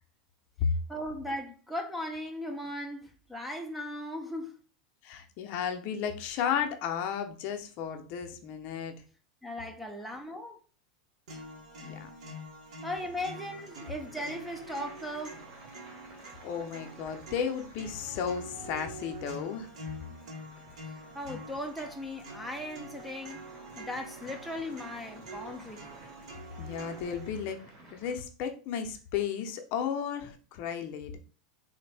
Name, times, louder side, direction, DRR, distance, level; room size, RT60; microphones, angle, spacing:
voice 1, 0.9-4.6 9.4-10.6 12.8-15.4 21.1-25.8, left 1 dB, 5° right, 0.4 m, -38 dB
voice 2, 5.0-8.9 11.8-12.1 16.4-19.7 26.6-27.6 27.9-31.2, left 8 dB, 50° left, 0.5 m, -34 dB
sound 1, 11.3-27.3, right 1 dB, 85° right, 1.0 m, -46 dB
sound 2, 13.1-28.2, right 1 dB, 55° right, 1.5 m, -54 dB
3.3 x 2.1 x 3.3 m
supercardioid pair, 135°, 3 cm